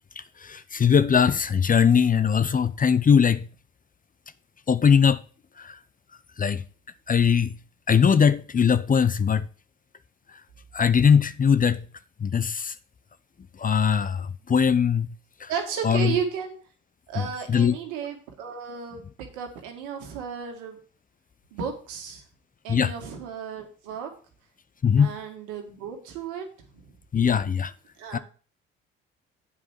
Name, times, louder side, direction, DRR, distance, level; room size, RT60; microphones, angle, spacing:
voice 1, 0.4-3.5 4.7-5.2 5.6-5.8 6.4-6.6 7.1-7.5 7.9-9.5 10.7-11.8 12.2-12.7 13.6-15.1 15.4-15.5 15.8-16.1 17.2-17.8 22.7-22.9 24.8-25.2 27.1-27.7 28.1-28.2, left 7 dB, 30° left, 0.7 m, -21 dB
voice 2, 15.5-16.6 17.1-20.8 21.5-22.2 22.6-24.1 25.0-26.5 28.0-28.2, right 7 dB, 75° right, 2.0 m, -33 dB
8.3 x 4.9 x 7.3 m
hypercardioid pair, 55°, 29 cm